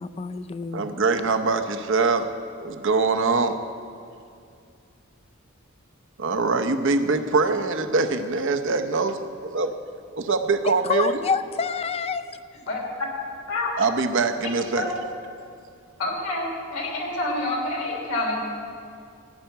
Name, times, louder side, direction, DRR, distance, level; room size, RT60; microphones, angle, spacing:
voice 1, 0.0-0.9 10.9-12.3, left 5 dB, 30° left, 12 dB, 0.4 m, -27 dB
voice 2, 0.7-2.3 2.6-3.6 6.2-9.7 10.2-11.2 13.8-14.9, right 4 dB, 65° right, 8 dB, 0.7 m, -23 dB
voice 3, 16.0-18.5, left 2 dB, 90° left, -1 dB, 3.0 m, -27 dB
14.5 x 5.8 x 9.1 m, 2.4 s
head